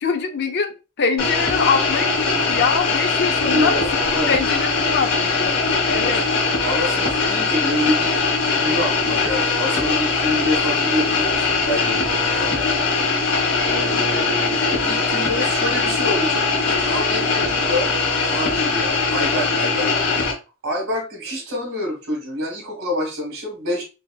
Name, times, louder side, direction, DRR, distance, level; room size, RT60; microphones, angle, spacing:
voice 1, 0.0-3.8 4.3-5.6 5.9-6.2, left 5 dB, 55° left, 6 dB, 0.6 m, -23 dB
sound 1, 1.2-20.3, left 4 dB, 75° left, 1.5 m, -21 dB
voice 2, 3.4-4.4 6.0-6.2 6.6-12.7 13.6-17.9 18.2-19.9 20.2-20.3 20.6-23.8, equal, 90° right, 0 dB, 1.6 m, -27 dB
3.8 x 2.7 x 2.3 m, 0.30 s
head